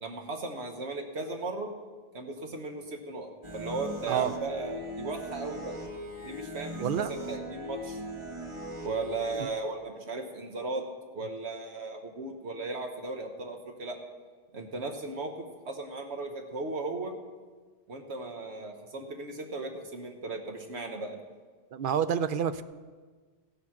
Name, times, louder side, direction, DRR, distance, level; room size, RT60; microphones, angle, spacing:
voice 1, 0.0-1.7 2.1-5.8 6.2-8.0 8.8-10.8 11.1-14.0 14.5-15.3 15.7-17.2 17.9-21.2, right 3 dB, 80° right, 3 dB, 1.3 m, -36 dB
sound 1, 3.4-9.4, equal, 30° right, 1.1 m, -39 dB
voice 2, 6.8-7.1 9.4-9.5 21.7-22.6, right 8 dB, 60° right, 13 dB, 0.7 m, -28 dB
15.5 x 7.2 x 5.8 m, 1.4 s
omnidirectional pair, 1.1 m